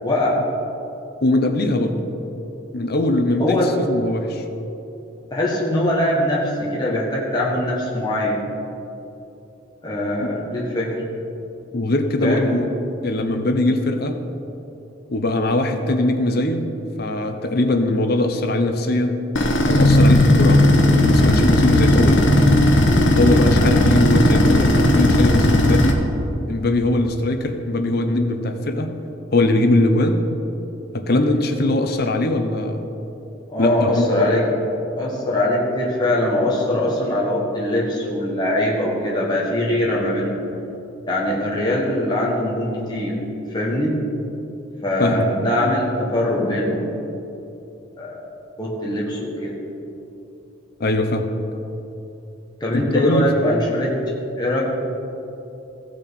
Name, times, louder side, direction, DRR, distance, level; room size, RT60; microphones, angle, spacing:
voice 1, 0.0-0.4 3.4-3.7 5.3-8.4 9.8-10.9 12.2-12.5 33.5-34.5 34.9-40.4 41.1-43.2 43.5-43.9 44.8-46.9 48.0-48.1 48.6-49.6 52.6-53.9 54.4-54.6, left 1 dB, 20° left, -5 dB, 1.6 m, -22 dB
voice 2, 1.2-2.0 2.7-4.4 11.7-12.7 13.0-14.2 15.1-16.7 17.0-19.2 19.6-22.3 23.2-26.0 26.5-28.9 29.3-30.2 30.9-32.8 33.6-34.3 45.0-45.5 50.8-51.2 52.7-53.2, left 1 dB, 50° left, 6 dB, 0.8 m, -21 dB
sound 1, 19.3-25.9, left 1 dB, 75° left, 1.1 m, -15 dB
16.0 x 6.3 x 4.2 m, 2.9 s
head